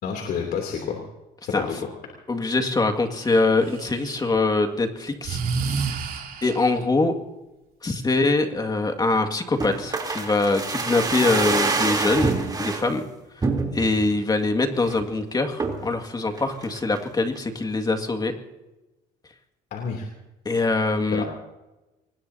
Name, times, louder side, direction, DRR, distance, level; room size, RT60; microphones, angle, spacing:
voice 1, 0.0-1.0 1.4-1.8 19.7-20.1 21.1-21.2, left 6 dB, 65° left, 1 dB, 3.1 m, -29 dB
voice 2, 2.3-5.9 6.4-7.1 7.8-12.3 12.6-13.1 13.4-13.5 13.7-18.3 20.5-21.2, left 3 dB, 25° left, 5 dB, 2.1 m, -23 dB
Breathing, 3.2-4.4 5.2-6.8, right 5 dB, 60° right, 3.2 m, -29 dB
sound 1, 9.6-12.8 13.4-14.0 14.4-14.5 14.8-15.1 15.6-15.9 16.4-17.1 17.4-17.5, right 3 dB, 25° right, 3.4 m, -26 dB
25.0 x 20.0 x 2.8 m, 1.0 s
cardioid pair, 110°, 17 cm